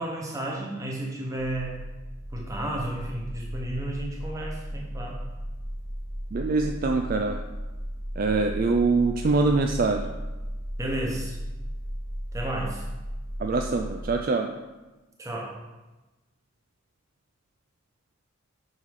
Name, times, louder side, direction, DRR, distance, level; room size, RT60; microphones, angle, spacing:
voice 1, 0.0-1.8 2.3-5.2 10.8-11.4 12.3-12.8 15.2-15.5, right 1 dB, 15° right, -2 dB, 1.1 m, -32 dB
sound 1, 1.4-14.2, equal, 30° left, 1.3 m, -35 dB
voice 2, 6.3-7.4 8.2-10.1 13.4-14.5, right 3 dB, 40° right, 3 dB, 0.4 m, -24 dB
6.2 x 5.5 x 4.8 m, 1.1 s
head